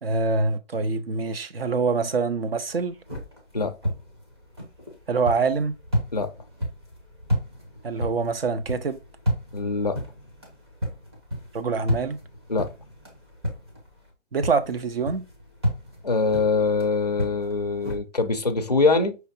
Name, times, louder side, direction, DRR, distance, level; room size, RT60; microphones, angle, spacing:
voice 1, 0.0-3.0 5.1-5.7 7.8-9.0 11.5-12.2 14.3-15.2, right 4 dB, 50° right, 0.6 m, -25 dB
sound 1, 2.7-14.1 14.4-18.0, equal, 20° right, 0.9 m, -32 dB
voice 2, 9.5-10.0 12.5-12.7 16.0-19.2, left 4 dB, 35° left, 0.4 m, -23 dB
5.6 x 3.2 x 2.5 m
hypercardioid pair, 175°, 37 cm